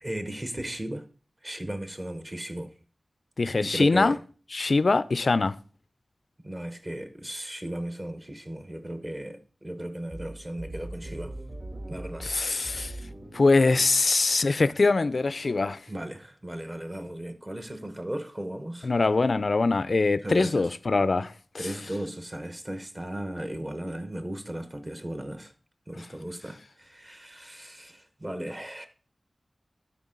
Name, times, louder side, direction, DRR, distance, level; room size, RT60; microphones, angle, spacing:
voice 1, 0.0-1.0 1.4-2.7 3.6-4.2 6.4-11.3 11.9-12.3 15.9-18.9 20.2-20.7 21.6-25.5 25.9-28.9, right 1 dB, 25° right, 0.9 m, -36 dB
voice 2, 3.4-4.2 4.5-5.5 12.2-13.0 13.3-15.8 18.8-21.3 21.6-21.7, left 3 dB, 60° left, 0.4 m, -23 dB
sound 1, 10.1-15.7, right 1 dB, 45° right, 1.8 m, -42 dB
12.0 x 4.5 x 3.8 m
wide cardioid pair, 90°, 0 cm